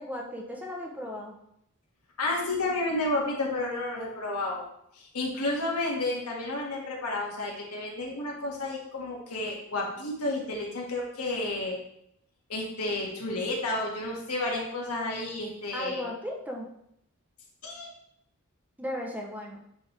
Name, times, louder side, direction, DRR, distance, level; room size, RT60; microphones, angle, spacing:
voice 1, 0.0-1.4 15.7-16.7 18.8-19.6, equal, 5° right, 0 dB, 0.7 m, -36 dB
voice 2, 2.2-4.6 4.9-11.8 12.5-16.0 17.6-17.9, left 2 dB, 85° left, -2 dB, 1.7 m, -31 dB
9.1 x 3.4 x 3.3 m, 0.75 s
head